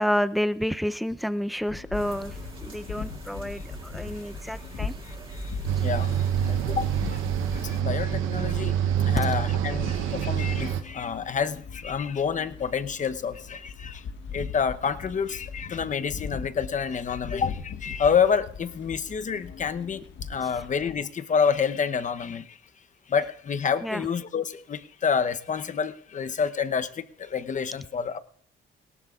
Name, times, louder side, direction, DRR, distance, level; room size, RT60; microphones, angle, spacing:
voice 1, 0.0-5.0 9.2-9.3 23.8-24.1, equal, ahead, 13 dB, 0.6 m, -29 dB
sound 1, 1.7-20.9, left 6 dB, 70° left, 1.2 m, -40 dB
sound 2, 1.9-7.8, right 3 dB, 25° right, 3.5 m, -43 dB
voice 2, 5.0-7.2 7.5-8.7 9.0-14.0 14.3-22.6 23.1-28.2, left 6 dB, 40° left, 11 dB, 0.8 m, -28 dB
sound 3, 5.7-10.8, right 9 dB, 90° right, 0.9 m, -26 dB
19.0 x 17.5 x 2.4 m, 0.63 s
cardioid pair, 90°, 20 cm